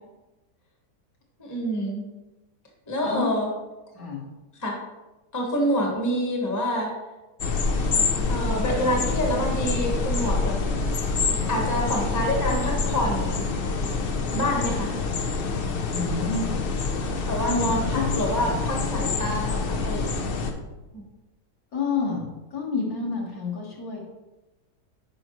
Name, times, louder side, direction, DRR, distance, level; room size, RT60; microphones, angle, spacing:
voice 1, 1.4-2.1 2.9-3.5 4.6-4.8 5.3-6.9 8.3-10.6 11.5-13.5 14.3-14.9 17.3-20.2 20.9-21.0, equal, 10° left, 0 dB, 1.0 m, -27 dB
sound 1, 7.4-20.5, left 4 dB, 80° left, 0.5 m, -26 dB
voice 2, 15.9-16.6 17.4-19.1 21.7-24.0, left 4 dB, 60° left, -3 dB, 1.9 m, -29 dB
8.7 x 5.6 x 3.1 m, 1.1 s
omnidirectional pair, 1.8 m